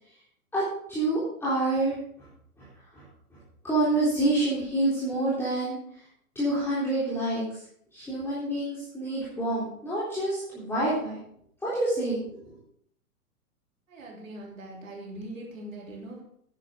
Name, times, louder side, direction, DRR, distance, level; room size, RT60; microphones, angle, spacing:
voice 1, 0.5-2.3 2.6-2.7 2.9-3.0 3.3-3.4 3.6-6.1 6.4-7.6 7.9-11.2 11.6-12.6, right 1 dB, 5° left, -9 dB, 3.6 m, -28 dB
voice 2, 13.9-16.2, right 1 dB, 55° right, -1 dB, 3.6 m, -41 dB
11.0 x 10.0 x 3.8 m, 0.67 s
figure-of-eight pair, 115°, 46 cm